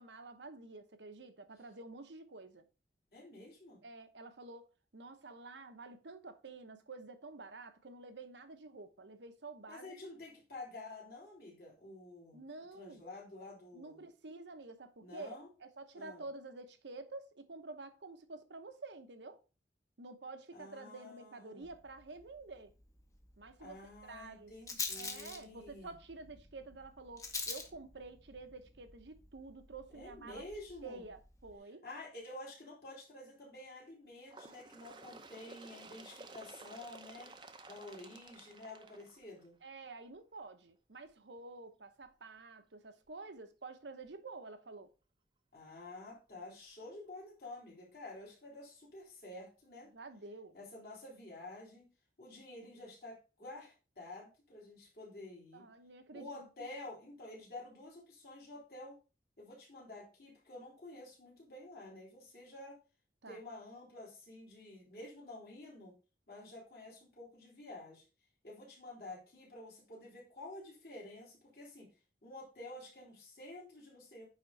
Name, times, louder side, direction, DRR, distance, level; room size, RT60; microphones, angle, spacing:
voice 1, 0.0-2.7 3.8-4.7 4.9-9.9 12.3-13.0 13.7-19.4 20.0-22.7 23.4-23.8 24.1-24.5 24.9-30.4 30.8-31.8 39.6-44.9 49.9-50.6 55.5-56.7 63.2-63.4, right 3 dB, 80° right, 1.0 m, -49 dB
voice 2, 3.1-3.8 9.7-12.4 12.7-14.0 15.0-15.5 15.9-16.2 20.5-21.7 23.6-25.9 29.9-31.0 31.8-37.3 37.7-39.6 45.5-49.9 50.5-51.9 52.2-55.7 56.1-59.0 59.4-62.8 63.3-65.9 66.3-68.0 68.4-71.9 72.2-74.3, left 2 dB, 55° left, 3.6 m, -50 dB
Rattle, 21.6-31.6, left 4 dB, 20° left, 0.9 m, -47 dB
Bird, 34.3-39.7 40.6-40.7 41.1-41.2 42.1-42.2 43.1-43.2 44.1-44.2, right 3 dB, 25° right, 0.7 m, -54 dB
9.4 x 3.7 x 4.1 m
head